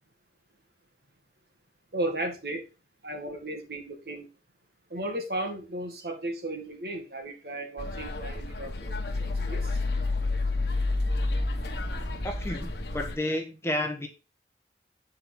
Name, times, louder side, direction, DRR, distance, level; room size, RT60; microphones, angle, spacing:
voice 1, 1.9-2.7 3.0-4.3 4.9-9.8, right 1 dB, 60° right, 3 dB, 1.9 m, -35 dB
sound 1, 7.8-13.2, left 2 dB, 75° left, 1.4 m, -30 dB
voice 2, 12.2-14.1, left 1 dB, 15° left, 3 dB, 1.1 m, -31 dB
8.6 x 4.5 x 3.6 m, 0.30 s
head